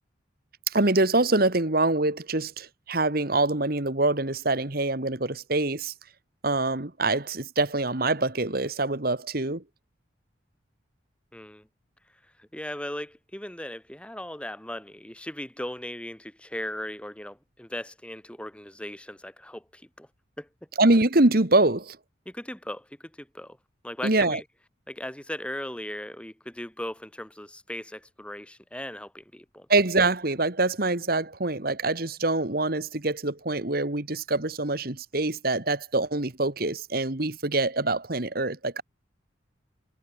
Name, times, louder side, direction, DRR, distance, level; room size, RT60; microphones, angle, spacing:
voice 1, 0.7-5.9 6.4-9.6 20.8-22.0 24.0-24.4 29.7-38.8, right 2 dB, 50° right, 1.8 m, -25 dB
voice 2, 11.3-11.7 12.4-20.1 20.4-20.5 22.2-23.6 23.8-24.4 24.9-29.7, left 1 dB, 5° left, 1.5 m, -38 dB
head